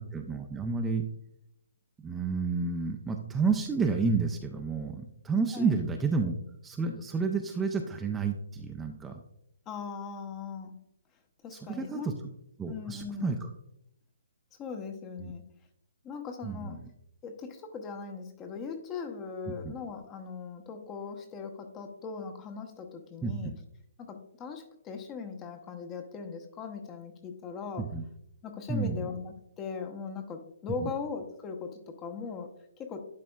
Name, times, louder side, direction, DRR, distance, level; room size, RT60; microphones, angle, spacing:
voice 1, 0.1-1.0 2.0-6.3 6.6-9.2 11.5-12.1 12.6-13.5 15.2-15.3 16.4-16.8 19.5-19.7 23.2-23.6 27.8-28.1 28.7-29.1 30.8-30.9, right 4 dB, 10° right, 3 dB, 0.4 m, -30 dB
voice 2, 9.7-10.8 11.4-12.1 12.7-13.3 14.6-15.4 16.0-16.8 17.2-23.5 24.0-27.9 28.4-33.0, left 5 dB, 20° left, 5 dB, 0.8 m, -39 dB
11.0 x 4.2 x 2.3 m, 0.78 s
hypercardioid pair, 145°, 0 cm